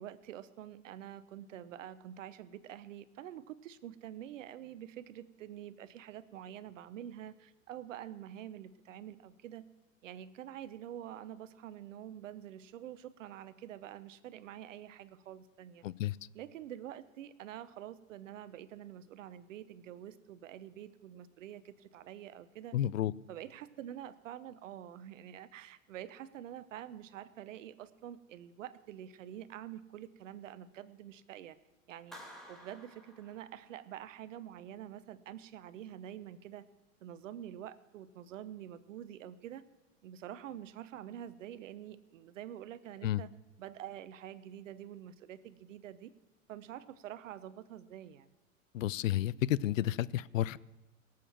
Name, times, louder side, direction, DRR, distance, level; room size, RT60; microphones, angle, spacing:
voice 1, 0.0-9.6 10.0-15.8 16.3-22.8 23.3-31.6 31.9-32.2 32.5-36.7 37.0-39.6 40.0-43.3 43.6-46.1 46.5-48.3, right 11 dB, 70° right, 0.9 m, -47 dB
voice 2, 15.8-16.2 22.7-23.1 43.0-43.2 48.7-50.6, left 13 dB, 70° left, 0.6 m, -31 dB
Clapping, 32.1-34.0, equal, ahead, 2.8 m, -53 dB
18.0 x 7.7 x 7.4 m
hypercardioid pair, 100°, 40 cm